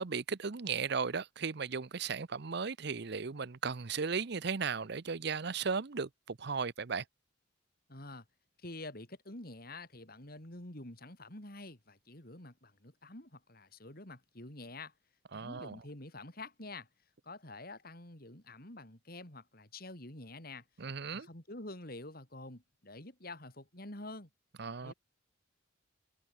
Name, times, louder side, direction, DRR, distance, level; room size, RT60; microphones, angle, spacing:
voice 1, 0.0-7.0 15.3-15.8 20.8-21.3 24.6-24.9, right 5 dB, 55° right, 0.7 m, -36 dB
voice 2, 7.9-8.2 8.6-14.9 15.3-16.9 17.2-20.6 21.1-24.3 24.8-24.9, left 2 dB, 50° left, 4.3 m, -48 dB
head